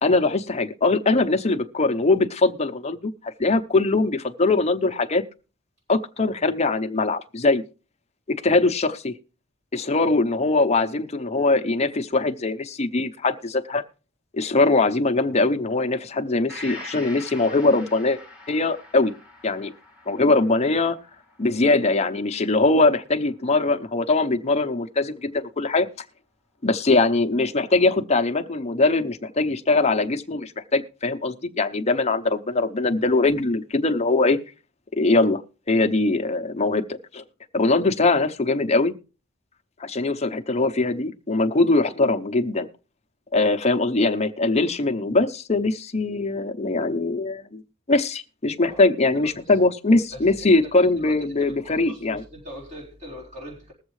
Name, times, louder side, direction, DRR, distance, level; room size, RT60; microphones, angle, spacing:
voice 1, 0.0-5.2 5.9-7.6 8.3-9.1 9.7-13.8 14.3-18.2 18.5-19.1 19.4-19.7 20.1-21.0 21.4-25.9 26.6-34.4 34.9-35.4 35.7-37.2 37.5-38.9 39.8-42.7 43.3-47.6 47.9-52.2, left 3 dB, 30° left, 7 dB, 0.8 m, -21 dB
Gong, 16.5-24.1 24.5-24.6, left 2 dB, 5° right, 1.7 m, -44 dB
voice 2, 50.1-50.7 51.0-53.7, equal, 35° right, -4 dB, 4.1 m, -41 dB
20.5 x 7.3 x 3.2 m, 0.35 s
head